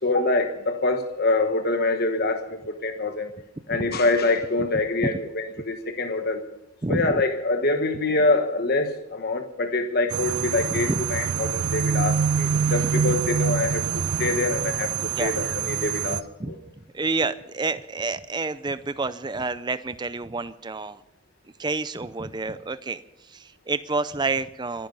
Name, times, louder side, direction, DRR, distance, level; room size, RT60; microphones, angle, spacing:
voice 1, 0.0-3.3 3.7-6.4 6.9-16.6, left 2 dB, 45° left, 6 dB, 1.2 m, -25 dB
sound 1, 10.1-16.2, right 7 dB, 75° right, 0.7 m, -25 dB
voice 2, 16.9-21.0 21.6-23.0 23.3-24.9, right 3 dB, 20° right, 14 dB, 0.5 m, -28 dB
25.5 x 10.5 x 5.5 m, 0.87 s
head